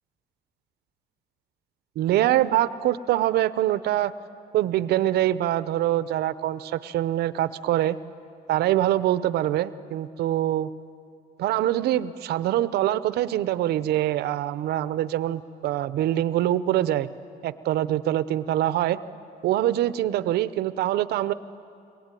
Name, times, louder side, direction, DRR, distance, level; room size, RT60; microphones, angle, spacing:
voice 1, 2.0-4.1 4.5-8.0 8.5-10.7 11.4-17.1 17.4-19.0 19.4-21.3, right 13 dB, 75° right, 15 dB, 0.8 m, -24 dB
23.5 x 21.5 x 9.2 m, 2.6 s
cardioid pair, 110°, 17 cm